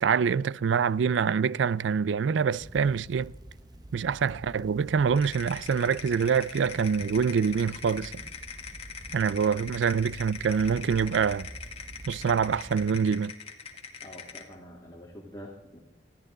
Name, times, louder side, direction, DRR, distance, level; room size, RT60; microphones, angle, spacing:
voice 1, 0.0-3.3 3.9-8.2 9.1-11.5 12.1-13.3, right 6 dB, 90° right, 0.4 m, -25 dB
sound 1, 2.5-12.9, right 1 dB, 20° right, 0.8 m, -47 dB
sound 2, 5.2-14.5, left 6 dB, 35° left, 1.8 m, -42 dB
voice 2, 14.0-15.8, equal, 20° left, 2.2 m, -46 dB
20.5 x 14.5 x 3.9 m
head